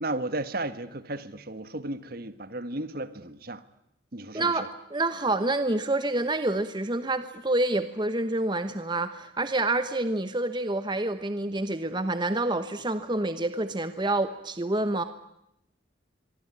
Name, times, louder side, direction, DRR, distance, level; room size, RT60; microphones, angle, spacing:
voice 1, 0.0-3.6 4.1-4.5, right 2 dB, 50° right, 1.5 m, -34 dB
voice 2, 4.3-15.0, right 2 dB, 25° right, 1.1 m, -27 dB
25.5 x 23.0 x 9.8 m
head